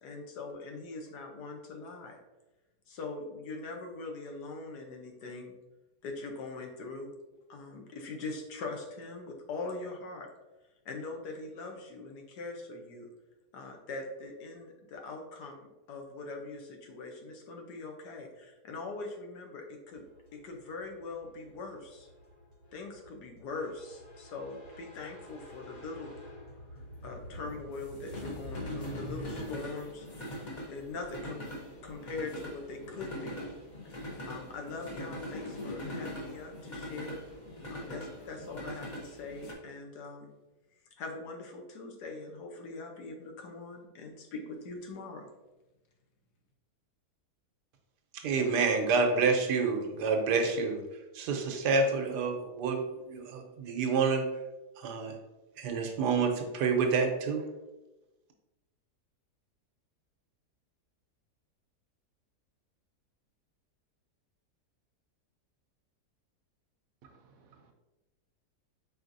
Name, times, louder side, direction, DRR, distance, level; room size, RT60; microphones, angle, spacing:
voice 1, 0.0-2.2 2.9-5.5 6.0-7.1 7.5-10.3 10.8-13.1 13.5-20.0 20.3-22.1 22.7-26.1 26.7-30.1 30.7-31.4 31.8-33.4 34.2-37.2 37.7-40.3 41.0-45.3, left 3 dB, 80° left, 2 dB, 1.3 m, -42 dB
via atlantic, 20.0-39.5, left 1 dB, 45° left, 0.6 m, -43 dB
voice 2, 48.1-50.8 51.1-52.8 53.1-54.3 54.8-55.1 55.6-57.5, right 4 dB, 90° right, 4 dB, 1.3 m, -28 dB
voice 3, 67.0-67.7, right 5 dB, 70° right, 4 dB, 0.9 m, -59 dB
4.6 x 4.1 x 2.6 m, 1.1 s
omnidirectional pair, 1.8 m